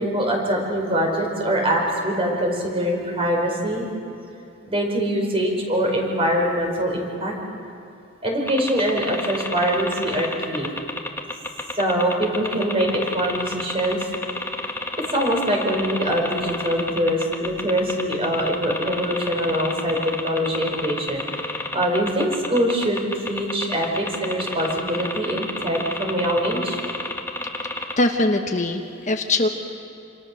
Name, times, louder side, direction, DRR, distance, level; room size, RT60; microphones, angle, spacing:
voice 1, 0.0-3.8 4.7-7.3 8.2-10.7 11.7-14.0 15.1-20.0 20.2-21.2 21.7-26.8, equal, 30° right, 1 dB, 5.1 m, -23 dB
sound 1, 8.5-27.9, left 2 dB, 10° left, 1.6 m, -30 dB
voice 2, 28.0-29.5, left 2 dB, 40° left, 4 dB, 1.3 m, -21 dB
28.5 x 26.5 x 6.5 m, 2.7 s
head